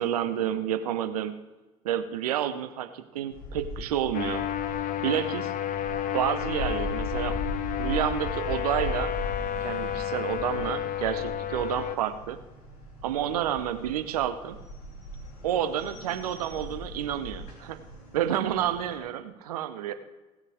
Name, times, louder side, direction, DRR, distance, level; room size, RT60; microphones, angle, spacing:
voice 1, 0.0-1.3 1.8-4.4 5.0-5.5 6.1-7.4 7.8-9.1 9.6-12.4 13.0-14.6 15.4-17.8 18.1-19.9, right 10 dB, 80° right, 11 dB, 0.8 m, -29 dB
sound 1, 3.3-19.0, equal, 80° left, 2.8 m, -39 dB
sound 2, 4.1-12.0, left 11 dB, 45° left, 0.9 m, -31 dB
17.5 x 6.5 x 4.9 m, 1.1 s
hypercardioid pair, 55°, 19 cm